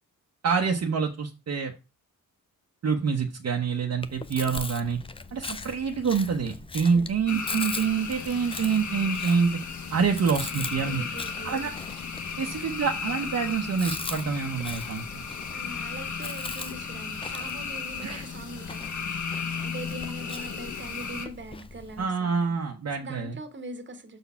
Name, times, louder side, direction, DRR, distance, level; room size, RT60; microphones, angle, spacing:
voice 1, 0.4-1.7 2.8-5.0 5.3-9.5 9.9-11.1 11.4-11.7 12.4-15.1 18.0-18.2 22.0-23.4, right 5 dB, 50° right, 0.9 m, -26 dB
Chewing mastication, 4.0-22.1, left 4 dB, 15° left, 0.4 m, -41 dB
sound 1, 7.3-21.3, left 5 dB, 60° left, 1.4 m, -35 dB
voice 2, 10.8-11.7 12.2-12.4 15.5-19.2 19.5-22.6 23.0-24.2, right 1 dB, 35° right, 1.2 m, -42 dB
6.8 x 4.1 x 5.6 m
wide cardioid pair, 155°, 33 cm